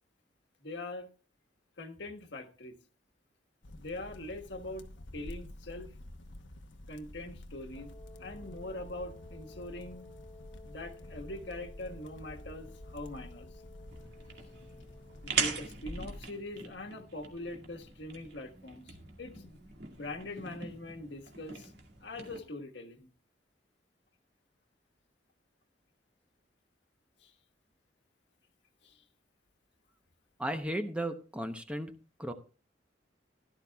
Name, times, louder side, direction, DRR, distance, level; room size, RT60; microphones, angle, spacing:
voice 1, 0.6-1.1 1.8-2.8 3.8-4.9 5.1-5.9 6.9-7.9 8.2-10.1 10.6-13.5 15.2-19.6 20.0-21.7 22.0-23.1 27.2-27.3 28.8-29.0, left 2 dB, 70° left, 1.5 m, -43 dB
sound 1, 3.6-16.3, left 1 dB, 90° left, 1.1 m, -49 dB
Wind instrument woodwind instrument, 7.7-15.6, left 3 dB, 30° left, 1.6 m, -55 dB
sound 2, 13.9-22.4, right 5 dB, 60° right, 2.1 m, -41 dB
voice 2, 30.4-32.3, right 1 dB, 5° right, 0.8 m, -35 dB
16.0 x 12.0 x 2.3 m
head